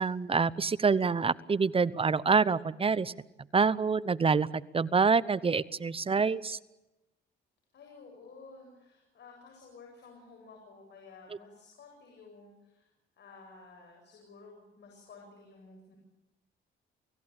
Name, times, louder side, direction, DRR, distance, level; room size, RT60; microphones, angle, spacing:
voice 1, 0.0-3.1 3.5-6.6, right 5 dB, 30° right, 18 dB, 0.9 m, -26 dB
voice 2, 7.7-12.9 13.2-16.0, left 4 dB, 60° left, 0 dB, 7.9 m, -53 dB
29.0 x 17.0 x 8.9 m, 1.0 s
cardioid pair, 90°, 20 cm